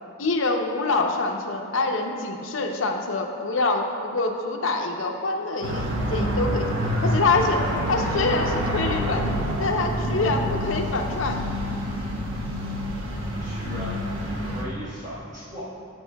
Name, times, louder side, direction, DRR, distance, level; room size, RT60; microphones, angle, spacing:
voice 1, 0.2-9.3 9.6-11.4, left 3 dB, 70° left, 3 dB, 0.7 m, -25 dB
sound 1, 5.6-14.6, equal, 85° right, 1.1 m, -27 dB
voice 2, 13.4-13.9 14.2-15.6, equal, 35° right, -11 dB, 1.6 m, -38 dB
12.0 x 8.0 x 2.3 m, 2.5 s
head